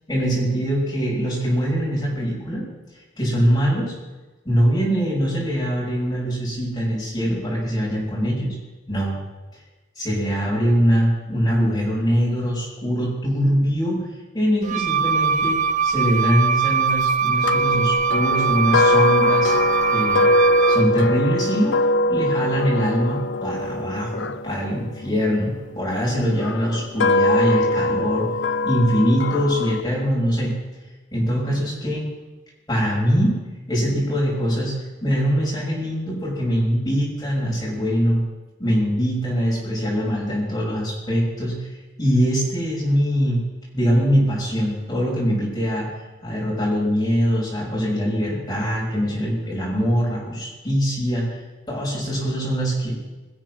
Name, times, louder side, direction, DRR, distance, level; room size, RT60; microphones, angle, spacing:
voice 1, 0.1-2.6 3.2-3.9 4.4-8.5 8.9-9.1 9.9-14.1 14.3-15.6 15.8-19.5 19.9-20.3 20.7-21.7 22.1-28.3 28.6-30.5 31.1-32.1 32.7-33.4 33.7-34.7 35.0-38.2 38.6-41.7 42.0-43.4 43.7-45.9 46.2-51.4 51.7-52.9, equal, 20° left, -6 dB, 6.8 m, -22 dB
Wind instrument woodwind instrument, 14.6-21.0, right 6 dB, 40° right, 0.6 m, -22 dB
sound 1, 17.4-25.6 26.3-29.8, left 2 dB, 80° left, 0.6 m, -22 dB
22.5 x 7.6 x 6.4 m, 1.2 s
head